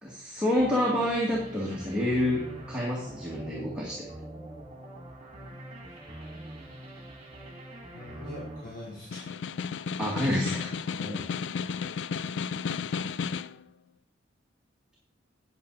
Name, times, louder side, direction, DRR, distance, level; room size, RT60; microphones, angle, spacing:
voice 1, 0.0-2.4 2.7-4.1 10.0-10.7, left 1 dB, 5° right, -5 dB, 1.9 m, -28 dB
sound 1, 0.6-9.6, right 1 dB, 30° right, 2.2 m, -44 dB
voice 2, 7.9-9.3 11.0-11.3, left 1 dB, 50° left, -6 dB, 3.5 m, -41 dB
Snare drum, 9.0-13.6, left 6 dB, 65° left, 0.3 m, -33 dB
9.6 x 8.6 x 4.0 m, 0.64 s
head